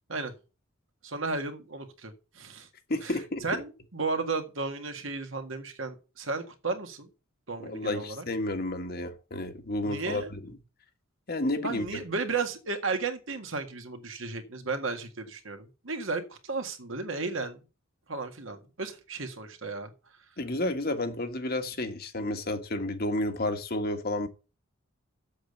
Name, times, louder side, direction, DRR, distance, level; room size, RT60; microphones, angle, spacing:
voice 1, 1.0-2.7 3.0-3.1 3.4-7.1 7.5-8.2 9.8-10.3 11.6-17.6 18.1-19.9, right 3 dB, 65° right, 1.8 m, -34 dB
voice 2, 2.9-3.6 7.6-10.6 11.3-12.0 20.4-24.3, left 1 dB, 50° left, 1.5 m, -31 dB
7.7 x 6.9 x 7.9 m
head